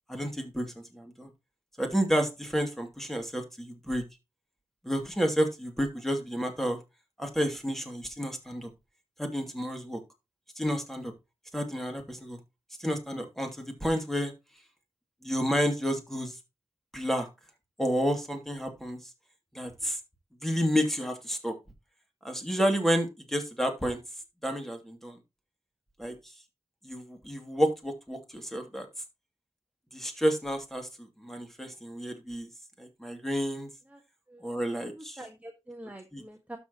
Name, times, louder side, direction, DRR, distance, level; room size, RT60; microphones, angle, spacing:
voice 1, 0.1-1.3 1.8-4.0 4.8-6.8 7.2-8.7 9.2-10.0 10.6-11.1 11.5-12.4 12.8-14.3 15.2-16.4 16.9-17.3 17.8-19.1 19.5-20.0 20.4-21.6 22.2-24.0 24.4-25.2 26.0-26.3 26.8-28.9 29.9-32.5 32.8-33.7 34.4-35.2 36.1-36.2, equal, 5° left, 4 dB, 2.6 m, -30 dB
voice 2, 34.8-36.6, right 1 dB, 10° right, 4 dB, 1.4 m, -45 dB
12.5 x 6.1 x 3.0 m, 0.24 s
wide cardioid pair, 65°, 11 cm